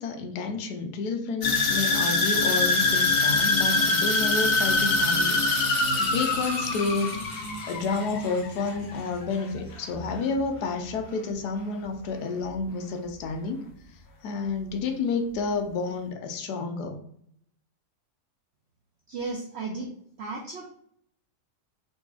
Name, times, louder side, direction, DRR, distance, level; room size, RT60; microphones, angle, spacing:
voice 1, 0.0-5.4 5.7-7.1 7.7-13.7 14.2-17.0, left 4 dB, 75° left, 5 dB, 1.1 m, -30 dB
sound 1, 1.4-9.6 9.9-10.4 10.8-10.9, left 3 dB, 50° left, 0.7 m, -24 dB
voice 2, 19.1-20.7, right 3 dB, 90° right, 1 dB, 0.5 m, -35 dB
3.9 x 3.0 x 2.3 m, 0.67 s
omnidirectional pair, 1.8 m